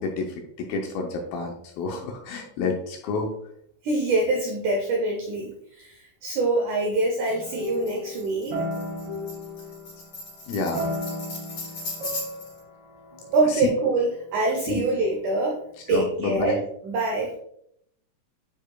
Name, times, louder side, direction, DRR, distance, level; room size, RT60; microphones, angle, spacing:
voice 1, 0.0-3.3 10.5-10.8 13.4-13.7 14.7-14.8 15.9-16.6, left 4 dB, 75° left, 2 dB, 2.2 m, -29 dB
voice 2, 3.8-8.6 13.3-15.6 15.9-16.6 16.8-17.4, right 2 dB, 85° right, 0 dB, 1.7 m, -25 dB
sound 1, 7.3-10.2 10.7-14.6, equal, 50° right, 1.9 m, -35 dB
Tambourine, 7.6-12.6, left 2 dB, 40° left, 3.4 m, -38 dB
9.0 x 4.8 x 2.3 m, 0.72 s
omnidirectional pair, 4.7 m